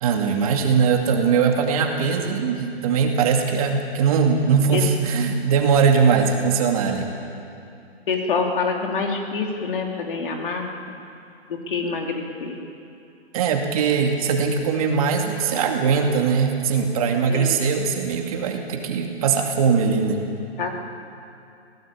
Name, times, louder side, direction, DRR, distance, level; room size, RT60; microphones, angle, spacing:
voice 1, 0.0-7.1 13.3-20.2, right 6 dB, 30° right, 2 dB, 2.4 m, -21 dB
voice 2, 8.1-10.7 11.5-12.6 17.3-17.6 20.6-20.7, left 4 dB, 50° left, 2 dB, 3.5 m, -26 dB
26.5 x 17.5 x 8.6 m, 2.7 s
hypercardioid pair, 160°, 33 cm